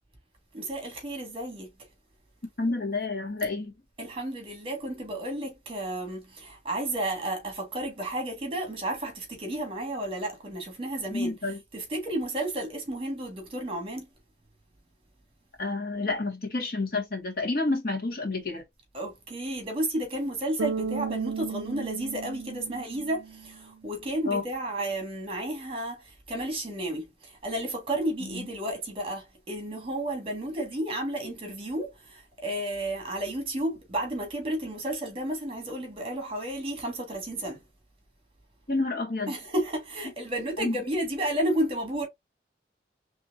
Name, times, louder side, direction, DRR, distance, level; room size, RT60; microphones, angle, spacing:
voice 1, 0.5-1.7 4.0-11.3 11.7-14.1 18.9-37.6 39.3-42.1, right 1 dB, 30° right, 1.9 m, -32 dB
voice 2, 2.6-3.7 11.1-11.6 15.6-18.6 24.3-24.4 28.3-28.4 38.7-39.3 40.6-40.8, left 3 dB, 55° left, 1.9 m, -29 dB
Bass guitar, 20.6-23.7, right 6 dB, 85° right, 0.4 m, -34 dB
4.4 x 3.4 x 2.7 m
head